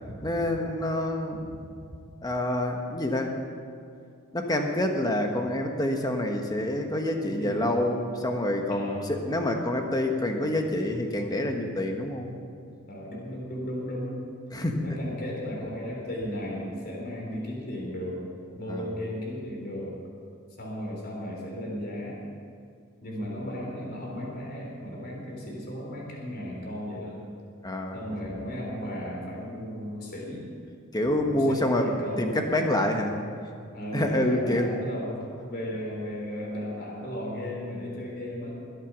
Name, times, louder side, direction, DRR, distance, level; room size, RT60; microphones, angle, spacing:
voice 1, 0.1-1.7 2.2-3.3 4.3-12.4 14.5-15.0 18.7-18.9 27.6-28.0 30.9-33.2 33.9-34.7, left 1 dB, 20° left, 3 dB, 1.3 m, -27 dB
voice 2, 7.2-7.9 8.7-9.1 12.9-14.2 14.8-18.3 18.5-20.0 20.6-22.2 23.0-27.2 27.9-30.5 31.3-32.3 33.7-38.6, equal, 45° left, -2 dB, 3.8 m, -35 dB
22.0 x 8.3 x 6.2 m, 2.4 s
head